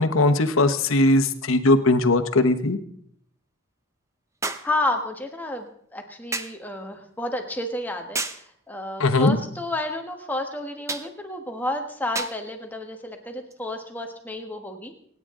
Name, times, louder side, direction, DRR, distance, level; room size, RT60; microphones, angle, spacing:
voice 1, 0.0-2.8 9.0-9.4, left 2 dB, 80° left, 8 dB, 1.1 m, -19 dB
sound 1, 0.6-0.7 4.4-4.8 6.3-6.6 8.1-8.5 10.9-11.1 12.1-12.4 13.5-13.6, right 3 dB, 15° right, 0.6 m, -31 dB
voice 2, 4.6-14.9, left 1 dB, 10° left, 3 dB, 1.3 m, -31 dB
27.0 x 9.5 x 3.7 m, 0.67 s
head